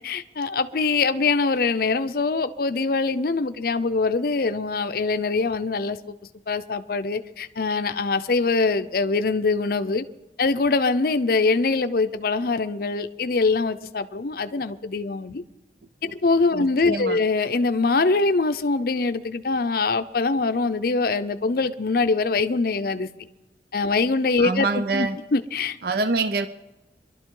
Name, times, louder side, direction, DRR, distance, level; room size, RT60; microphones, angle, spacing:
voice 1, 0.0-6.1 6.5-10.0 10.4-15.4 16.1-23.1 23.7-24.7 24.9-25.8, left 3 dB, 55° left, 0.6 m, -23 dB
voice 2, 16.5-17.2 24.4-25.2 25.8-26.5, right 3 dB, 60° right, 0.5 m, -25 dB
23.0 x 12.5 x 3.8 m
head